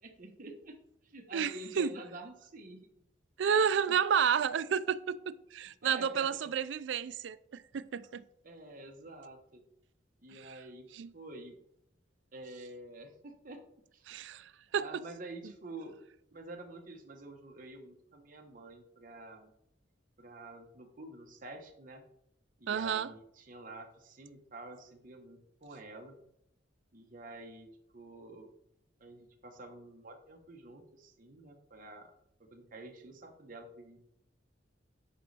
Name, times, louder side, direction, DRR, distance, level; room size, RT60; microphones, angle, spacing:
voice 1, 0.0-0.7 1.0-2.8 3.9-4.0 5.8-6.3 8.4-9.6 10.2-10.9 11.1-11.6 12.3-13.6 13.9-14.0 14.7-16.0 16.3-19.5 20.2-22.1 22.6-26.2 26.9-27.7 27.9-28.5 29.0-32.1 32.4-34.0, right 2 dB, 45° right, 1.1 m, -48 dB
voice 2, 1.3-1.9 3.4-8.2 10.3-10.5 10.9-11.1 14.1-15.0 22.7-23.1, right 7 dB, 70° right, 0.4 m, -31 dB
9.0 x 5.1 x 3.4 m
head